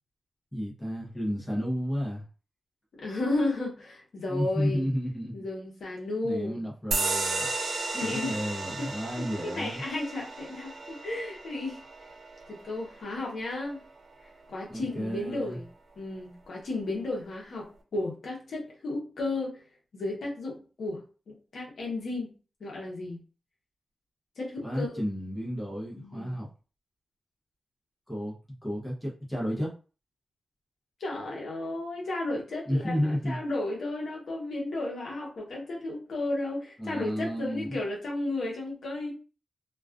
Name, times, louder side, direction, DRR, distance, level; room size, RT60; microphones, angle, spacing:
voice 1, 0.5-2.2 4.3-5.3 6.2-7.5 8.0-9.8 14.7-15.6 24.6-26.5 28.1-29.7 32.7-33.4 36.8-37.8, equal, 5° left, -4 dB, 0.7 m, -32 dB
voice 2, 3.0-4.9 5.3-6.6 7.9-11.8 12.5-13.8 14.5-15.7 16.0-19.6 19.9-22.3 22.6-23.2 24.4-25.0 25.9-26.4 31.0-39.1, left 2 dB, 65° left, -2 dB, 0.8 m, -34 dB
sound 1, 6.9-14.0, right 3 dB, 55° right, 0.4 m, -34 dB
2.3 x 2.3 x 2.4 m, 0.35 s
wide cardioid pair, 175°, 0 cm